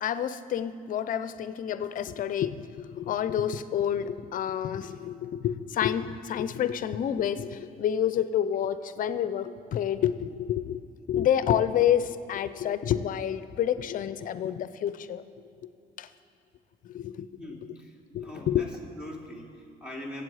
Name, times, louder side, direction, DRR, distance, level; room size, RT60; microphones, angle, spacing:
voice 1, 0.0-10.8 11.1-15.2 16.0-16.1 16.8-17.3 18.1-18.7, left 10 dB, 55° left, 13 dB, 0.6 m, -28 dB
voice 2, 17.4-17.9 18.2-20.2, left 1 dB, 5° right, -1 dB, 2.7 m, -42 dB
23.5 x 8.1 x 4.9 m, 2.4 s
cardioid pair, 110°, 17 cm